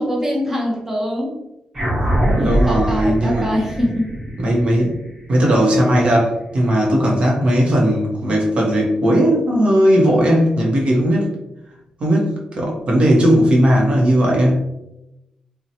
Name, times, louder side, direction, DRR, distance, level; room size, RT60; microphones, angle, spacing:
voice 1, 0.0-1.4 2.6-4.2, equal, 15° right, -3 dB, 0.5 m, -23 dB
sound 1, 1.7-6.5, equal, 35° right, 1.1 m, -23 dB
voice 2, 2.4-3.5 4.4-4.9 5.3-11.3 12.0-14.6, equal, 50° right, -2 dB, 0.7 m, -16 dB
2.7 x 2.1 x 2.7 m, 0.90 s
cardioid pair, 110°, 2 cm